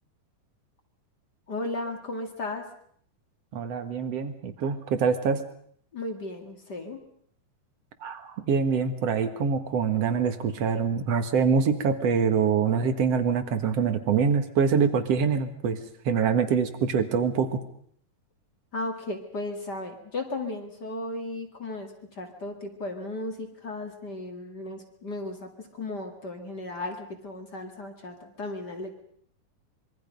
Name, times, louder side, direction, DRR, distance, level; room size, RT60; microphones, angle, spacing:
voice 1, 1.5-2.7 5.9-7.0 18.7-29.0, left 2 dB, 35° left, 4 dB, 2.3 m, -35 dB
voice 2, 3.5-5.4 8.0-15.8 16.1-17.6, right 6 dB, 55° right, 9 dB, 2.2 m, -25 dB
26.0 x 23.0 x 5.3 m, 0.62 s
omnidirectional pair, 3.9 m